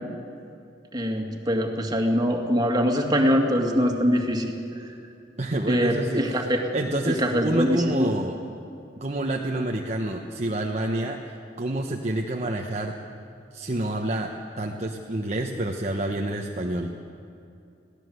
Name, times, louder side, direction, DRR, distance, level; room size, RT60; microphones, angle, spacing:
voice 1, 0.9-4.5 5.7-6.7 7.0-8.1, equal, 25° right, 2 dB, 2.4 m, -23 dB
voice 2, 5.4-8.4 9.0-11.2 11.6-12.9 13.5-14.3 14.6-16.9, right 1 dB, 40° right, 1 dB, 1.2 m, -28 dB
22.5 x 16.5 x 8.0 m, 2.6 s
head